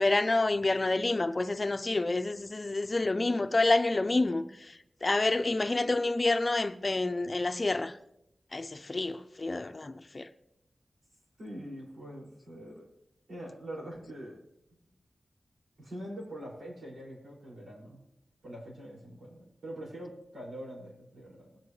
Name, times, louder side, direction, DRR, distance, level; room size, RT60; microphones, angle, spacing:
voice 1, 0.0-8.0 8.5-10.3, left 2 dB, 35° left, 0.6 m, -28 dB
voice 2, 11.4-12.9 13.3-14.4 15.8-18.0 18.4-21.6, equal, 85° right, 5.9 m, -44 dB
20.5 x 9.3 x 3.3 m
wide cardioid pair, 115°, 0 cm